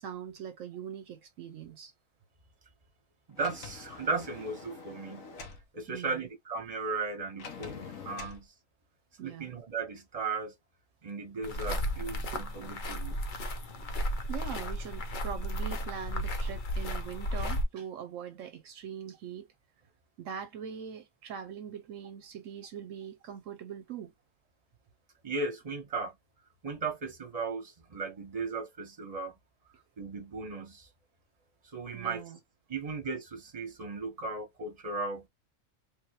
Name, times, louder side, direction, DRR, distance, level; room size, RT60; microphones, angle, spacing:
voice 1, 0.0-1.9 5.9-6.2 9.2-9.5 12.3-12.4 13.7-13.9 14.3-19.5 20.2-24.1 31.9-32.4, right 8 dB, 75° right, 0.9 m, -42 dB
Sliding door, 3.3-5.6 7.4-8.4, left 5 dB, 75° left, 1.3 m, -45 dB
voice 2, 3.3-5.3 5.7-8.5 9.2-10.5 11.0-13.2 25.2-26.2 26.6-29.3 30.0-30.9 31.7-32.2 32.7-35.3, right 4 dB, 30° right, 1.1 m, -36 dB
sound 1, 11.4-17.6, equal, 45° left, 0.8 m, -34 dB
3.5 x 3.0 x 3.0 m
omnidirectional pair, 1.4 m